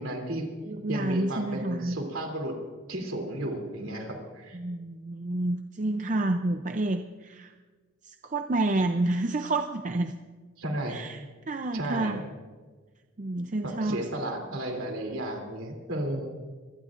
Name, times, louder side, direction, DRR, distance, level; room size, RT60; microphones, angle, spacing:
voice 1, 0.0-0.5 0.9-2.6 2.9-4.6 10.6-11.0 11.7-12.2 13.6-16.3, right 1 dB, 65° right, 2 dB, 3.0 m, -33 dB
voice 2, 0.6-2.0 4.5-7.5 8.0-10.1 10.9-11.2 11.5-12.2 13.2-14.0, right 2 dB, 35° right, 6 dB, 0.5 m, -29 dB
24.5 x 18.0 x 2.5 m, 1.4 s
head